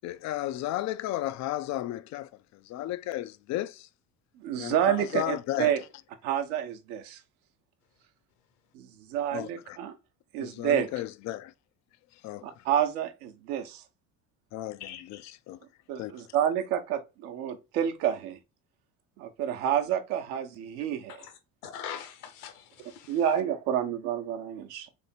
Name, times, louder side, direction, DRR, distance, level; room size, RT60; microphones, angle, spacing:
voice 1, 0.0-3.9 4.6-5.7 9.3-9.8 10.4-11.5 12.2-12.6 14.5-15.6 16.0-16.3, left 15 dB, 40° left, 0.4 m, -34 dB
voice 2, 4.4-5.8 6.2-7.2 8.7-9.9 10.3-10.9 12.4-13.8 15.9-18.4 19.2-21.2 23.1-24.9, right 9 dB, 65° right, 0.9 m, -29 dB
voice 3, 14.8-15.3 21.2-21.3 21.6-23.2, left 9 dB, 70° left, 1.1 m, -42 dB
3.5 x 3.5 x 4.2 m
figure-of-eight pair, 60°, 47 cm